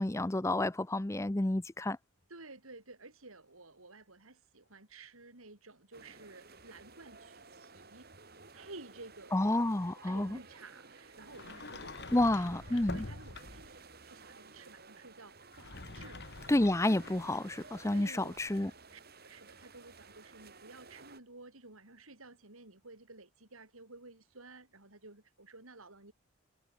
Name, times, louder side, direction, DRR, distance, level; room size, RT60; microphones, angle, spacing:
voice 1, 0.0-2.0 9.3-10.4 12.1-13.0 16.5-18.7, left 1 dB, 15° left, 0.6 m, -30 dB
voice 2, 2.3-8.1 8.5-9.5 10.1-16.5 17.9-18.4 18.9-26.1, right 3 dB, 80° right, 5.4 m, -53 dB
sound 1, 5.9-21.2, right 4 dB, 45° right, 5.9 m, -55 dB
Sliding door, 11.3-13.8 15.4-18.6, left 3 dB, 50° left, 1.4 m, -47 dB
head